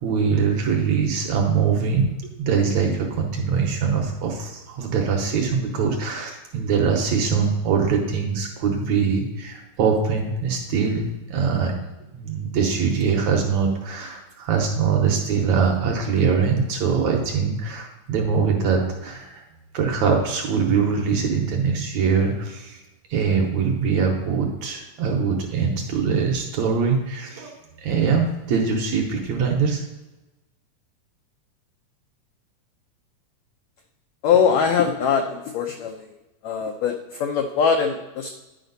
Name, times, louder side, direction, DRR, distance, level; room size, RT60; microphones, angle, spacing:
voice 1, 0.0-11.7 12.1-19.4 19.7-22.8 23.1-27.5 27.8-29.8, right 5 dB, 70° right, 1 dB, 1.9 m, -22 dB
voice 2, 34.2-36.1 36.4-38.3, left 6 dB, 85° left, 4 dB, 1.5 m, -22 dB
10.5 x 5.0 x 4.0 m, 1.0 s
omnidirectional pair, 3.8 m